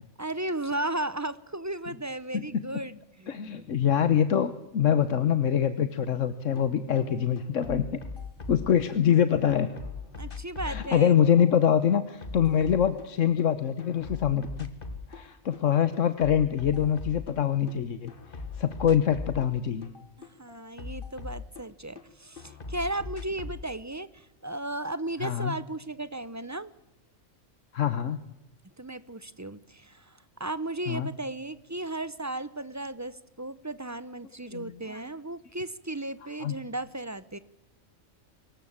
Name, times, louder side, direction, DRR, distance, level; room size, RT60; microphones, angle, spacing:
voice 1, 0.2-3.7 10.1-11.2 20.2-26.7 28.8-37.4, right 2 dB, 15° right, 16 dB, 0.7 m, -35 dB
voice 2, 3.3-8.0 8.5-9.7 10.6-14.7 15.1-19.9 25.2-25.5 27.7-28.2 30.9-31.1 34.5-35.0 36.4-36.5, left 9 dB, 65° left, 12 dB, 1.3 m, -25 dB
sound 1, 6.6-6.7 7.0-9.2 9.5-13.5 13.8-15.3 15.5-17.8 18.1-22.1 22.4-23.7, left 4 dB, 40° left, 1.8 m, -40 dB
25.0 x 14.5 x 8.7 m, 0.90 s
omnidirectional pair, 1.4 m